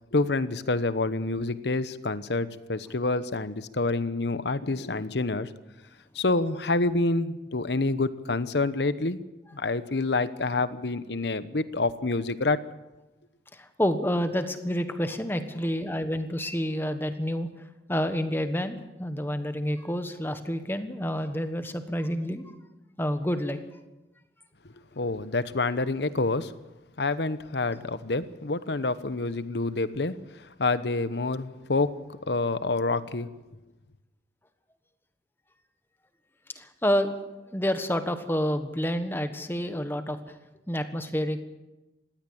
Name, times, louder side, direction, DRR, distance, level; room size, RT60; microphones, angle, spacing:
voice 1, 0.1-5.5 6.1-9.2 9.5-12.6 25.0-26.5 27.0-30.1 30.6-31.9 32.3-33.3, left 3 dB, 70° left, 14 dB, 1.0 m, -27 dB
voice 2, 13.5-17.5 17.9-22.4 23.0-23.6 36.6-37.1 37.5-40.2 40.7-41.4, equal, 10° left, 9 dB, 1.3 m, -28 dB
19.5 x 16.0 x 8.7 m, 1.1 s
head